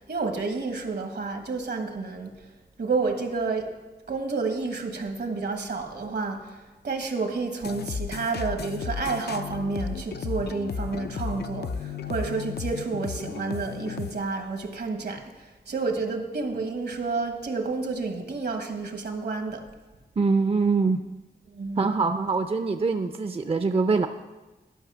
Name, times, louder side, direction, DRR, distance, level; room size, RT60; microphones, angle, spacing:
voice 1, 0.0-2.4 2.8-3.7 4.1-19.7 21.5-22.0, right 4 dB, 75° right, 4 dB, 1.4 m, -30 dB
sound 1, 7.6-14.2, left 6 dB, 70° left, 0.5 m, -34 dB
voice 2, 20.2-21.0 21.8-24.1, right 4 dB, 35° right, 8 dB, 0.5 m, -23 dB
12.0 x 5.4 x 6.1 m, 1.2 s
cardioid pair, 65°, 18 cm